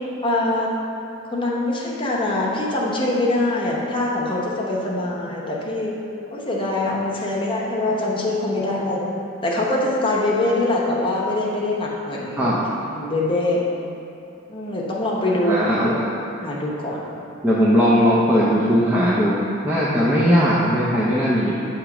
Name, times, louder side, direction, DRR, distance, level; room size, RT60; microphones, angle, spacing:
voice 1, 0.2-0.7 1.3-6.0 6.3-9.1 9.4-12.5 12.9-13.6 14.5-16.1 16.4-17.1 20.1-20.5, left 2 dB, 25° left, -5 dB, 0.8 m, -23 dB
voice 2, 15.3-15.9 17.4-21.5, equal, 10° right, -9 dB, 0.5 m, -18 dB
7.0 x 3.0 x 4.8 m, 2.7 s
head